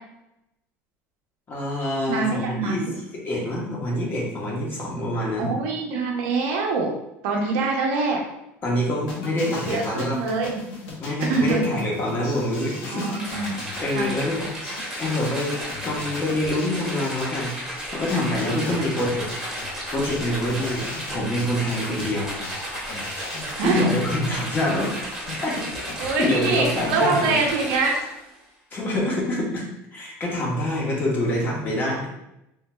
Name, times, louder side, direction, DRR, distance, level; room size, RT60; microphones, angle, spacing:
voice 1, 1.5-2.9 3.2-5.5 7.3-7.4 8.6-10.2 11.0-14.5 15.0-15.6 15.8-19.2 19.9-22.4 23.6-24.9 25.3-27.4 28.7-29.6 29.9-32.1, left 1 dB, 30° left, -3 dB, 1.1 m, -26 dB
voice 2, 2.1-2.9 5.4-6.9 7.2-8.2 9.7-10.5 11.3-11.6 12.9-13.6 13.9-14.1 18.7-18.8 22.0-22.1 23.6-23.9 26.0-28.0, right 3 dB, 85° right, 1 dB, 0.7 m, -24 dB
sound 1, 9.1-26.1, left 3 dB, 85° left, 0.8 m, -39 dB
sound 2, 13.2-28.3, equal, 5° right, 1.1 m, -34 dB
3.7 x 2.7 x 2.2 m, 0.85 s
cardioid pair, 130°, 6 cm